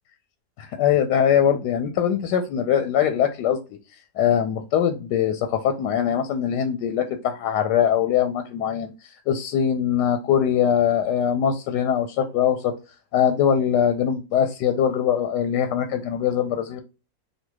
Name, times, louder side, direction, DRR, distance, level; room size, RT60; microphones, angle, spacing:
voice 1, 0.6-3.6 4.2-12.7 13.1-16.8, left 9 dB, 90° left, 8 dB, 1.2 m, -22 dB
5.7 x 2.4 x 3.8 m, 0.29 s
omnidirectional pair, 1.8 m